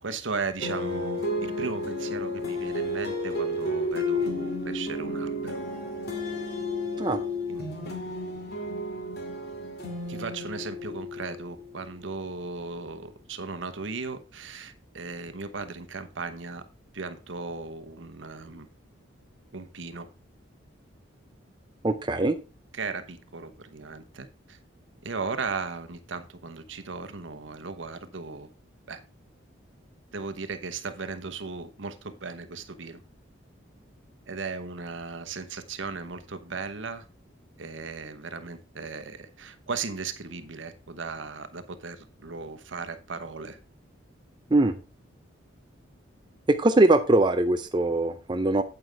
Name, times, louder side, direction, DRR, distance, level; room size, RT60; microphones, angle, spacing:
voice 1, 0.0-5.6 7.5-7.6 10.1-16.6 16.9-18.7 19.5-20.1 22.7-24.6 25.0-28.5 28.9-29.0 30.1-33.0 34.3-37.1 37.6-43.6, right 4 dB, 75° right, 9 dB, 1.0 m, -36 dB
sound 1, 0.6-11.8, left 1 dB, 50° left, 2.3 m, -32 dB
voice 2, 21.8-22.4 44.5-44.8 46.5-48.6, right 2 dB, 25° right, 7 dB, 0.5 m, -22 dB
9.0 x 8.0 x 3.4 m, 0.32 s
head